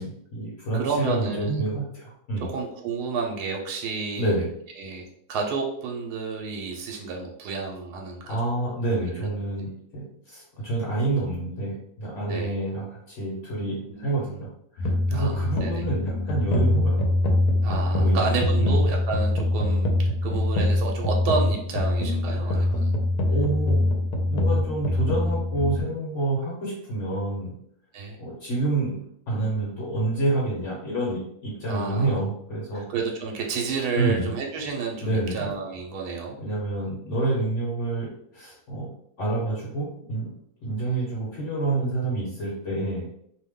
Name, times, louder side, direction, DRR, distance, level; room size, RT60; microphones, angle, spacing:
voice 1, 0.0-2.5 4.2-4.5 8.3-17.1 18.0-18.3 18.6-18.8 22.5-22.7 23.3-23.8 24.3-27.5 28.2-32.8 34.0-34.3 35.0-35.5 36.4-38.9 39.2-40.3 40.6-43.1, right 2 dB, 55° left, -5 dB, 1.1 m, -28 dB
voice 2, 0.7-1.6 2.5-4.3 4.8-5.0 5.3-8.4 9.1-9.3 9.6-9.7 12.3-12.5 13.9-14.4 15.1-15.8 17.6-19.9 20.2-22.9 27.9-28.2 31.7-32.2 32.7-36.4, right 4 dB, 85° right, 1 dB, 1.1 m, -30 dB
sound 1, 14.8-25.8, left 1 dB, 80° left, 1.1 m, -23 dB
2.7 x 2.1 x 3.5 m, 0.70 s
omnidirectional pair, 1.7 m